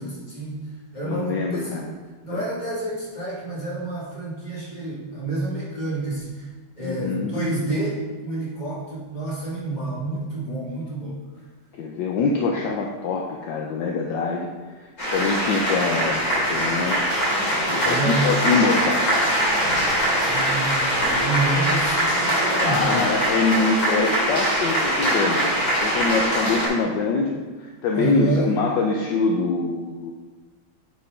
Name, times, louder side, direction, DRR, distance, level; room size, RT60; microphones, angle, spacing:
voice 1, 0.0-1.8 2.2-6.5 6.8-11.2 17.8-18.3 20.3-23.2 27.9-28.5, right 2 dB, 20° left, -8 dB, 2.8 m, -28 dB
voice 2, 1.0-1.9 2.3-2.4 6.8-7.3 11.7-17.3 17.7-19.1 22.6-25.5 25.8-30.1, left 4 dB, 70° left, 0 dB, 1.3 m, -24 dB
sound 1, 15.0-26.7, equal, 45° left, 3.1 m, -22 dB
7.0 x 5.2 x 5.0 m, 1.3 s
omnidirectional pair, 2.3 m